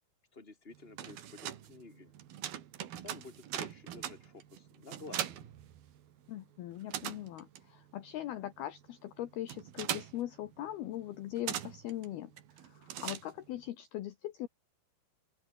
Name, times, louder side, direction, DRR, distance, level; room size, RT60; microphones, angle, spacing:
voice 1, 0.3-2.1 3.0-5.5, left 3 dB, 15° left, 4.3 m, -51 dB
sound 1, 0.7-6.3 6.6-13.7, right 11 dB, 60° right, 3.5 m, -42 dB
voice 2, 6.3-12.3 12.6-14.5, left 13 dB, 70° left, 2.9 m, -40 dB
open air
omnidirectional pair, 5.3 m